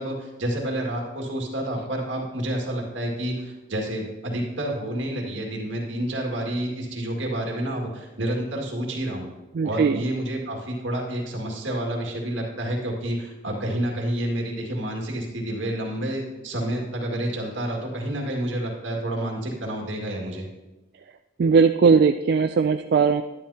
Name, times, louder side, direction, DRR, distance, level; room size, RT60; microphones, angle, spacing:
voice 1, 0.0-9.3 9.6-20.5, right 1 dB, 80° right, 0 dB, 2.0 m, -29 dB
voice 2, 9.5-10.0 21.4-23.2, right 5 dB, 55° right, 7 dB, 0.3 m, -19 dB
11.0 x 10.5 x 2.8 m, 1.1 s
head